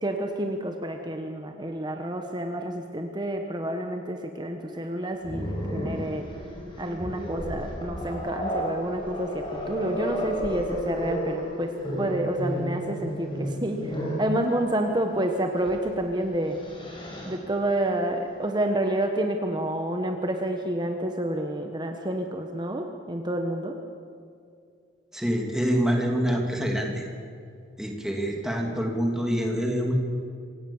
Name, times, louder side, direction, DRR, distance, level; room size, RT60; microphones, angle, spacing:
voice 1, 0.0-6.3 6.8-16.6 17.2-23.8, right 1 dB, 25° right, 4 dB, 1.2 m, -29 dB
Growling, 5.2-14.3 15.6-15.8 16.2-17.4, equal, 25° left, 5.7 m, -32 dB
voice 2, 25.1-27.0 27.8-29.9, equal, 5° right, 1 dB, 2.9 m, -26 dB
27.0 x 17.5 x 7.2 m, 2.4 s
head